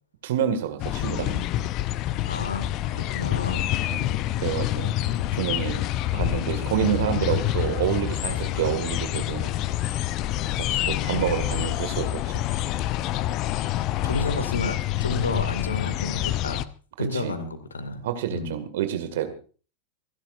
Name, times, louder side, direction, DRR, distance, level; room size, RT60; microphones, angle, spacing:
voice 1, 0.2-1.4 3.9-4.1 4.4-4.9 5.3-5.8 6.1-9.5 10.7-12.4 17.0-17.3 18.0-19.3, right 10 dB, 55° right, 9 dB, 2.2 m, -28 dB
sound 1, 0.8-16.6, left 13 dB, 40° left, 0.7 m, -27 dB
voice 2, 2.2-3.7 14.0-16.7 17.0-18.6, left 3 dB, 75° left, 11 dB, 2.3 m, -31 dB
28.0 x 11.5 x 2.6 m, 0.37 s
figure-of-eight pair, 90°, 0 cm